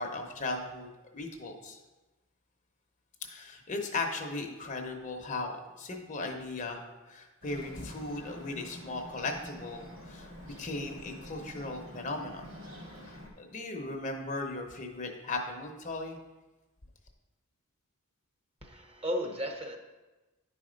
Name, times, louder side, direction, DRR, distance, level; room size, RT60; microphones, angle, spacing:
voice 1, 0.0-1.8 3.2-12.4 13.0-16.2, left 2 dB, 35° left, 3 dB, 0.8 m, -37 dB
Bird, 7.4-13.3, equal, 75° right, 2.5 m, -47 dB
voice 2, 18.6-19.8, equal, 30° right, 2 dB, 1.0 m, -34 dB
10.0 x 4.2 x 5.1 m, 1.1 s
head